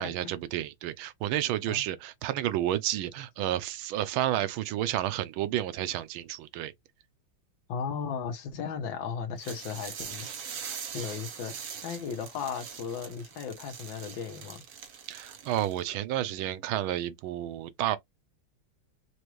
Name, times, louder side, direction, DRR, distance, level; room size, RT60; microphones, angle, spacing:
voice 1, 0.0-6.7 15.1-18.0, right 13 dB, 85° right, 1.4 m, -31 dB
voice 2, 7.7-10.3 10.9-14.6, left 6 dB, 70° left, 1.6 m, -36 dB
sound 1, 9.4-15.9, right 7 dB, 55° right, 1.2 m, -42 dB
4.7 x 2.6 x 3.0 m
omnidirectional pair, 2.2 m